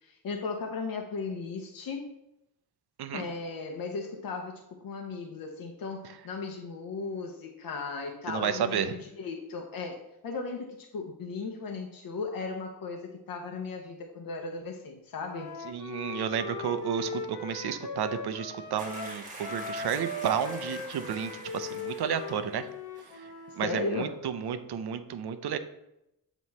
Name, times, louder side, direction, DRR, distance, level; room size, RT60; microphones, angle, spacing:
voice 1, 0.0-2.1 3.1-15.5 23.5-24.2, left 4 dB, 65° left, 3 dB, 0.8 m, -36 dB
voice 2, 8.3-8.9 15.7-22.7 23.1-23.3 23.6-25.6, right 8 dB, 90° right, 10 dB, 0.6 m, -32 dB
Wind instrument woodwind instrument, 15.2-23.7, left 4 dB, 90° left, 1.0 m, -39 dB
sound 1, 18.8-22.7 23.0-23.2, right 2 dB, 20° right, 1.5 m, -46 dB
7.7 x 3.1 x 4.1 m, 0.85 s
cardioid pair, 100°, 38 cm